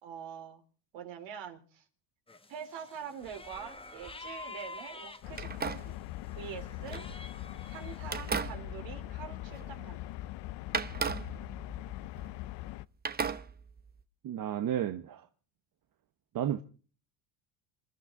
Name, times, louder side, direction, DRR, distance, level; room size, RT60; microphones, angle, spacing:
voice 1, 0.0-0.6 0.9-1.8 2.5-6.0 6.3-7.0 7.7-10.1, right 8 dB, 65° right, 3.5 m, -44 dB
sound 1, 2.3-5.9 6.2-8.3, left 3 dB, 10° left, 1.2 m, -48 dB
sound 2, 3.2-4.4 5.3-7.6 8.0-10.0 10.2-10.3 10.7-12.7 13.0-14.0, right 5 dB, 20° right, 0.9 m, -38 dB
sound 3, 5.2-12.9, left 16 dB, 60° left, 0.7 m, -42 dB
voice 2, 14.2-15.3 16.3-16.6, right 10 dB, 45° right, 1.1 m, -32 dB
27.5 x 12.5 x 3.7 m
supercardioid pair, 100°, 48 cm